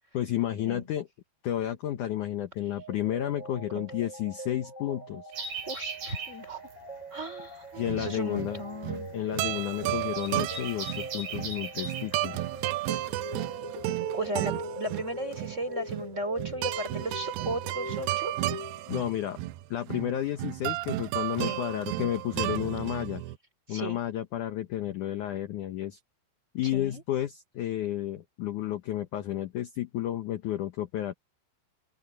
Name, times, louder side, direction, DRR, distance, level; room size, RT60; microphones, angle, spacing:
voice 1, 0.1-1.1 1.4-5.3 7.8-8.6 9.1-12.4 18.9-19.4 19.7-23.2 23.7-26.0 26.5-31.1, left 12 dB, 70° left, 2.0 m, -31 dB
sound 1, 2.8-19.4, equal, 15° left, 3.8 m, -43 dB
sound 2, 5.3-13.6, right 4 dB, 60° right, 6.5 m, -40 dB
voice 2, 5.7-6.6 7.1-7.7 8.0-9.1 14.1-18.3 21.4-21.6 23.7-24.0 26.7-27.0, right 1 dB, 20° right, 3.5 m, -35 dB
sound 3, 7.7-23.4, right 17 dB, 85° right, 2.6 m, -33 dB
open air
omnidirectional pair, 4.9 m